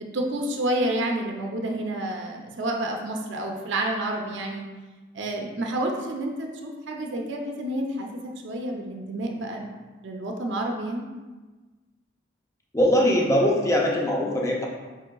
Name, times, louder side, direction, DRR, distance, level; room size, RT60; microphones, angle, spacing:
voice 1, 0.1-4.7 5.1-9.8 10.0-11.0, right 1 dB, 70° right, 1 dB, 0.5 m, -29 dB
voice 2, 12.7-14.7, equal, 15° left, -1 dB, 0.4 m, -21 dB
5.5 x 3.1 x 2.2 m, 1.3 s
head